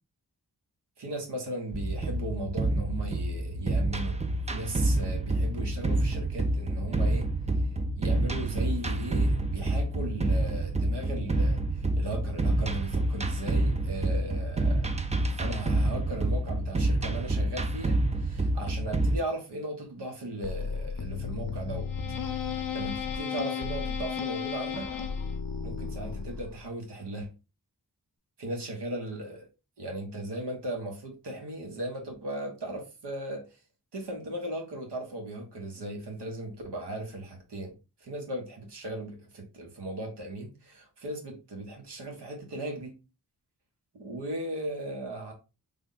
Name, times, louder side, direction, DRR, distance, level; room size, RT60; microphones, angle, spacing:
voice 1, 1.0-4.1 4.5-7.3 8.0-14.9 15.3-21.9 22.7-24.9 25.6-27.3 28.4-29.5 29.8-33.6 33.9-43.0 43.9-45.3, right 1 dB, 85° right, 1.1 m, -37 dB
sound 1, 1.7-19.2, right 2 dB, 20° right, 0.4 m, -28 dB
sound 2, 20.4-26.7, left 6 dB, 55° left, 0.6 m, -34 dB
3.4 x 2.2 x 3.7 m
wide cardioid pair, 65°, 40 cm